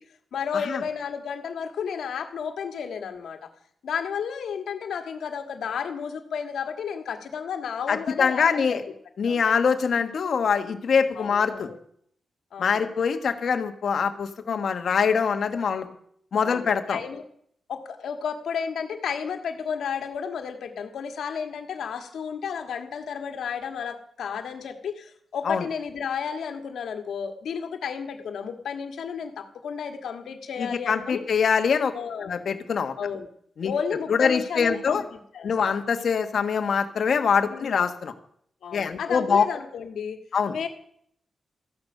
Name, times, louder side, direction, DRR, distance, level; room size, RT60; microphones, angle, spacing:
voice 1, 0.3-3.5 3.8-8.9 9.3-9.4 11.2-11.8 12.5-12.9 14.4-14.6 16.4-17.2 17.7-31.2 31.9-32.4 33.0-33.3 33.7-35.8 37.5-37.9 38.6-40.2 40.5-40.7, left 7 dB, 90° left, 6 dB, 1.7 m, -32 dB
voice 2, 7.9-8.8 9.2-11.7 12.6-15.9 16.3-17.0 25.4-25.6 30.6-31.9 32.3-32.9 33.6-33.7 34.1-35.0 35.4-38.1 38.7-39.4 40.3-40.5, left 6 dB, 60° left, 7 dB, 1.5 m, -24 dB
14.5 x 11.5 x 6.6 m, 0.65 s
wide cardioid pair, 135°, 0 cm